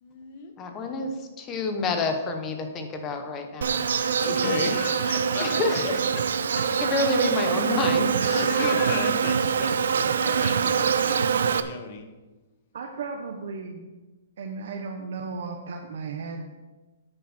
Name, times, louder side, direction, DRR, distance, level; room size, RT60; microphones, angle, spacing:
voice 1, 0.0-0.5 4.2-5.8 6.6-6.7 6.9-7.1 8.2-12.1, left 5 dB, 35° left, 5 dB, 1.5 m, -34 dB
voice 2, 0.6-3.8 5.4-6.0 6.8-8.1, left 3 dB, 20° left, 5 dB, 1.1 m, -28 dB
Insect, 3.6-11.6, right 7 dB, 80° right, 0.7 m, -24 dB
voice 3, 12.7-13.8 14.4-16.6, right 4 dB, 60° right, 2 dB, 1.1 m, -35 dB
10.0 x 9.2 x 4.5 m, 1.2 s
hypercardioid pair, 170°, 0 cm